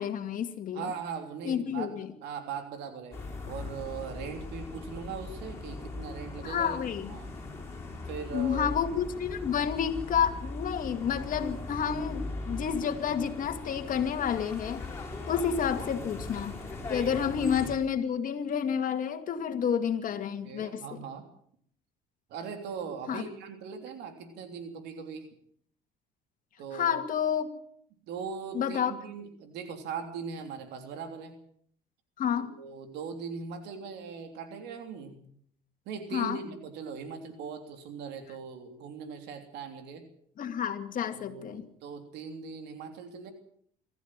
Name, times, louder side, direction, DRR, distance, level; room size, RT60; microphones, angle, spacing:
voice 1, 0.0-0.9 1.4-2.1 6.4-7.1 8.3-14.8 15.3-16.5 16.9-21.0 23.1-23.2 26.7-27.5 28.5-28.9 32.2-32.5 36.1-36.4 40.4-41.6, left 8 dB, 55° left, 8 dB, 2.3 m, -30 dB
voice 2, 0.7-1.9 2.2-3.2 3.5-7.3 8.0-8.7 17.2-17.3 20.4-21.2 22.3-25.3 26.6-27.0 28.1-31.3 32.4-35.3 35.8-40.0 41.1-43.3, right 6 dB, 85° right, 6 dB, 3.2 m, -40 dB
sound 1, 3.1-17.7, left 2 dB, 15° left, 7.2 m, -39 dB
24.0 x 14.5 x 7.6 m, 0.64 s
cardioid pair, 110°, 17 cm